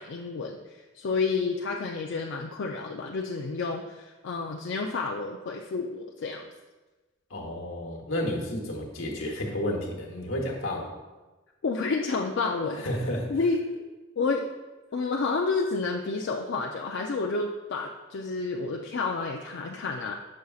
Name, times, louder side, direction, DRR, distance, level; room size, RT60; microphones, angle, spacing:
voice 1, 0.0-6.4 11.6-12.9 13.3-13.8 14.2-14.5 14.9-20.1, left 4 dB, 65° left, 1 dB, 0.4 m, -30 dB
voice 2, 7.3-10.9 12.8-13.3, left 1 dB, 80° left, -1 dB, 1.2 m, -31 dB
6.8 x 6.3 x 2.4 m, 1.2 s
head